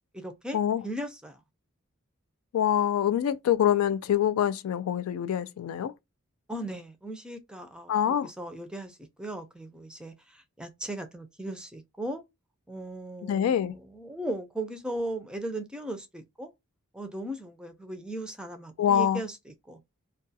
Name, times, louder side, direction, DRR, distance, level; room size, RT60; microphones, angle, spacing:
voice 1, 0.1-1.4 6.5-12.2 12.7-16.5 16.9-19.8, right 1 dB, 5° right, 0.4 m, -37 dB
voice 2, 2.5-5.9 7.9-8.3 13.2-13.7 18.8-19.2, left 9 dB, 80° left, 0.3 m, -25 dB
2.3 x 2.3 x 2.6 m
head